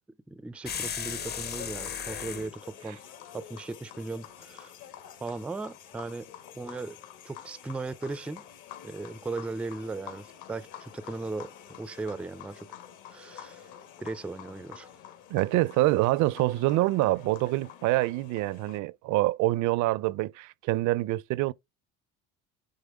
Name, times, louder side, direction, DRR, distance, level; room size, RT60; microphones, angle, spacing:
voice 1, 0.3-3.0 3.3-4.7 5.2-7.0 7.3-8.4 8.8-11.5 11.8-12.7 13.1-13.7 14.0-14.9, right 3 dB, 5° right, 0.3 m, -37 dB
sound 1, 0.7-2.5, left 8 dB, 30° left, 0.6 m, -35 dB
sound 2, 1.3-18.8, left 10 dB, 70° left, 1.7 m, -48 dB
voice 2, 15.3-21.5, right 18 dB, 65° right, 0.5 m, -26 dB
9.5 x 3.4 x 3.4 m
supercardioid pair, 105°, 32 cm